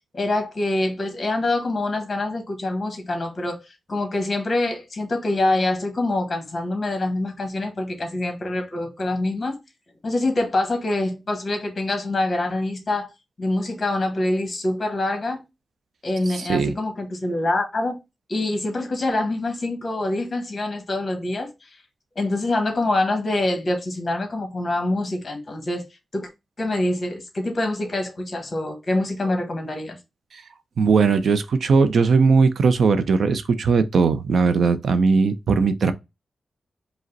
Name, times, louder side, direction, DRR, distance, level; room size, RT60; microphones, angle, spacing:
voice 1, 0.1-3.6 3.9-9.6 10.0-13.1 13.4-15.4 16.0-18.0 18.3-21.5 22.1-25.9 26.1-26.3 26.6-30.0, left 2 dB, 30° left, 1.2 m, -25 dB
voice 2, 16.3-16.7 30.3-30.4 30.8-35.9, right 4 dB, 60° right, 0.4 m, -19 dB
5.0 x 2.1 x 3.9 m
wide cardioid pair, 160°, 0 cm